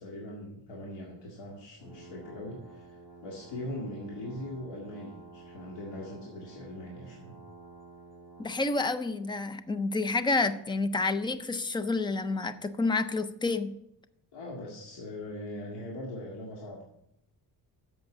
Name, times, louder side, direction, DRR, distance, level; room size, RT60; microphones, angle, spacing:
voice 1, 0.0-7.4 14.3-16.8, left 1 dB, 90° left, -2 dB, 2.1 m, -41 dB
sound 1, 1.8-8.5, right 3 dB, 50° left, 3.6 m, -51 dB
voice 2, 8.4-13.7, left 3 dB, 10° left, 12 dB, 0.4 m, -29 dB
7.9 x 7.1 x 8.2 m, 0.81 s
cardioid pair, 170°, 42 cm